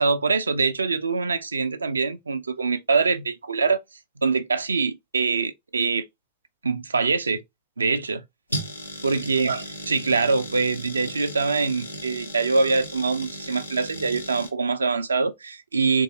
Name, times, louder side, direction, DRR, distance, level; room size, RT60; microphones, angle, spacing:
voice 1, 0.0-3.8 4.2-6.1 6.6-7.4 7.8-8.2 9.0-16.0, right 4 dB, 75° right, 0.3 m, -24 dB
sound 1, 8.5-14.5, equal, 85° left, 0.8 m, -36 dB
3.2 x 2.3 x 2.7 m
figure-of-eight pair, 90°, 0 cm